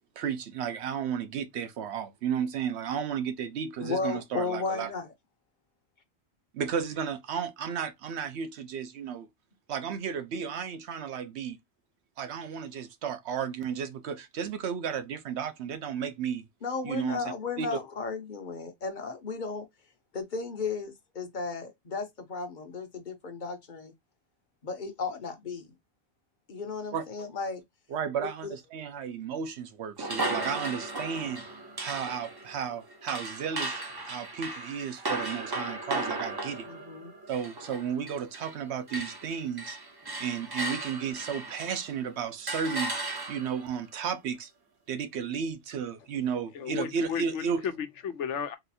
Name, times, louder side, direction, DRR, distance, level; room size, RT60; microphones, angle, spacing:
voice 1, 0.2-4.9 6.5-9.3 9.7-11.6 12.2-16.4 16.8-17.2 17.6-17.8 26.9-27.0 27.9-31.4 31.8-33.8 34.1-36.7 37.3-39.8 40.2-42.9 43.3-44.5 44.9-47.6, right 7 dB, 70° right, 0.9 m, -33 dB
voice 2, 3.8-5.1 16.6-19.7 20.1-23.9 24.6-25.7 26.5-27.6 36.6-37.1, left 4 dB, 50° left, 0.8 m, -34 dB
sound 1, 30.0-38.6 38.9-41.9 42.5-43.7, right 2 dB, 25° right, 0.5 m, -36 dB
voice 3, 46.5-48.6, left 7 dB, 90° left, 1.0 m, -34 dB
3.9 x 2.5 x 2.6 m
omnidirectional pair, 1.2 m